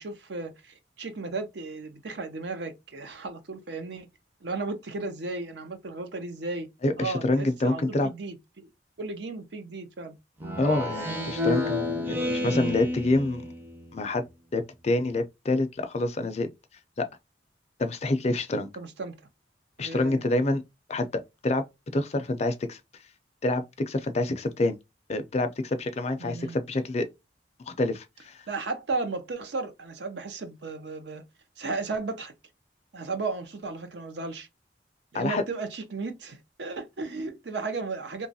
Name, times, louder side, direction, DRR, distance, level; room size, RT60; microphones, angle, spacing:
voice 1, 0.0-4.1 4.4-6.7 7.0-8.7 9.0-10.2 18.8-19.1 19.8-20.2 26.2-26.6 28.5-31.2 31.6-32.3 32.9-34.5 35.1-38.3, right 3 dB, 65° right, 0.6 m, -35 dB
voice 2, 6.8-8.1 10.6-13.4 13.9-14.2 14.5-16.5 17.0-17.1 17.8-18.7 19.8-20.6 20.9-21.6 21.9-22.8 23.4-24.8 25.1-27.1 27.7-28.4 35.1-35.4, left 2 dB, 35° left, 0.4 m, -27 dB
Speech synthesizer, 10.4-13.9, left 1 dB, 10° right, 0.5 m, -30 dB
2.9 x 2.3 x 2.6 m
head